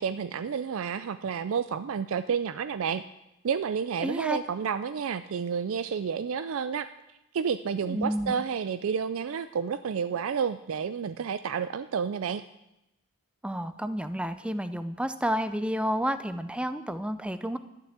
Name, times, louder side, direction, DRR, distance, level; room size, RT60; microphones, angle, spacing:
voice 1, 0.0-3.0 3.4-6.9 7.3-12.4, right 6 dB, 65° right, 12 dB, 0.4 m, -30 dB
voice 2, 4.0-4.4 7.9-8.3 13.4-17.6, equal, 5° right, 11 dB, 0.5 m, -30 dB
12.0 x 6.8 x 8.1 m, 0.90 s
head